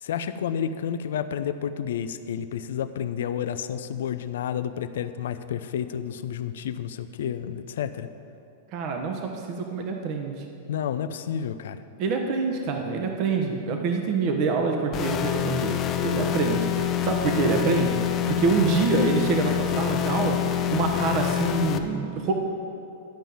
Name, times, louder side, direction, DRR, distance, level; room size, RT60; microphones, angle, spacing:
voice 1, 0.0-8.1 10.7-11.8, left 8 dB, 75° left, 11 dB, 0.5 m, -30 dB
voice 2, 8.7-10.4 12.0-20.4 20.7-22.3, right 4 dB, 50° right, 3 dB, 1.1 m, -26 dB
sound 1, 14.9-21.8, left 11 dB, 35° left, 0.7 m, -26 dB
11.5 x 5.4 x 7.6 m, 2.6 s
hypercardioid pair, 115°, 0 cm